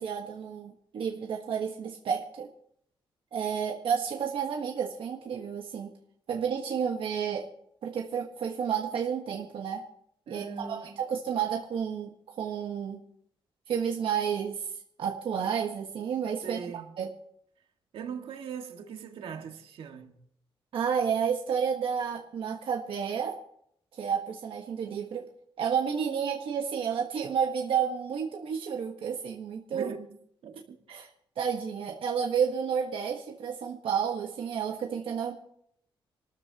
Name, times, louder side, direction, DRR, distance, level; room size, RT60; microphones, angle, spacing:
voice 1, 0.0-2.5 3.3-5.9 6.3-7.5 7.8-9.8 10.3-13.0 13.7-14.6 15.0-16.6 17.0-17.1 20.7-23.4 24.0-25.2 25.6-29.9 30.9-31.1 31.4-35.3, right 7 dB, 70° right, 1.2 m, -31 dB
voice 2, 10.3-11.0 16.4-17.0 17.9-20.2 29.7-30.2 30.4-30.8, right 6 dB, 90° right, 1.8 m, -40 dB
26.5 x 13.5 x 2.9 m
wide cardioid pair, 170°, 9 cm